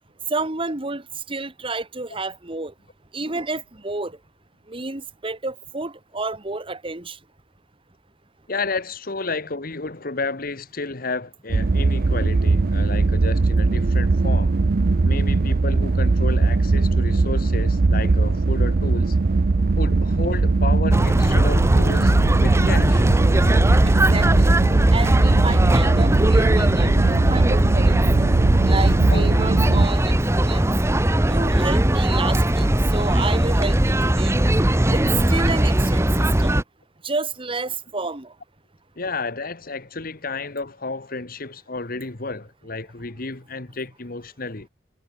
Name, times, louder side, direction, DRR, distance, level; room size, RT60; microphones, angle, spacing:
voice 1, 0.3-2.7 3.1-4.2 4.7-7.2 23.8-24.5 24.9-28.3 28.6-30.7 31.3-32.7 32.9-34.4 34.9-35.0 35.3-36.6 37.0-38.3, right 3 dB, 30° right, 1.9 m, -30 dB
voice 2, 8.5-14.6 15.0-19.2 19.8-23.0 25.8-26.0 26.6-27.3 29.1-29.3 34.9-35.1 39.0-44.7, left 3 dB, 55° left, 1.6 m, -31 dB
sound 1, 11.5-29.9, right 3 dB, 55° right, 0.6 m, -20 dB
sound 2, 20.9-36.6, right 1 dB, 15° right, 1.0 m, -19 dB
head